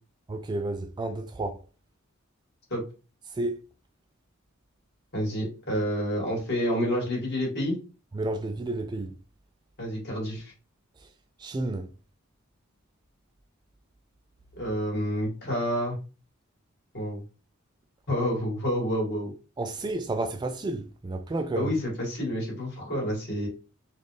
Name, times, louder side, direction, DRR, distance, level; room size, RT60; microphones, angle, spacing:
voice 1, 0.3-1.6 3.4-3.6 8.1-9.1 11.4-11.9 19.6-21.7, right 2 dB, 20° right, 0.3 m, -31 dB
voice 2, 5.1-7.8 9.8-10.5 14.6-16.0 16.9-17.2 18.1-19.3 21.6-23.5, equal, 55° left, 2.1 m, -29 dB
4.1 x 2.4 x 3.3 m
head